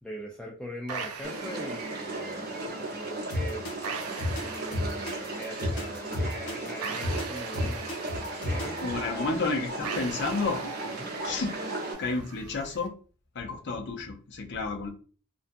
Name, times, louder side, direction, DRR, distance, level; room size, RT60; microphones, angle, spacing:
voice 1, 0.0-3.7 4.4-9.3 11.0-11.1, equal, 5° left, -2 dB, 0.3 m, -41 dB
sound 1, 0.9-12.9, right 6 dB, 75° right, 0.4 m, -42 dB
sound 2, 1.2-11.9, right 2 dB, 45° right, 0.8 m, -36 dB
sound 3, 3.3-8.9, left 1 dB, 75° left, 1.1 m, -32 dB
voice 2, 8.8-10.6 11.2-11.5 12.0-12.9 13.3-14.9, left 3 dB, 50° left, 3 dB, 0.6 m, -31 dB
2.5 x 2.2 x 2.5 m, 0.40 s
head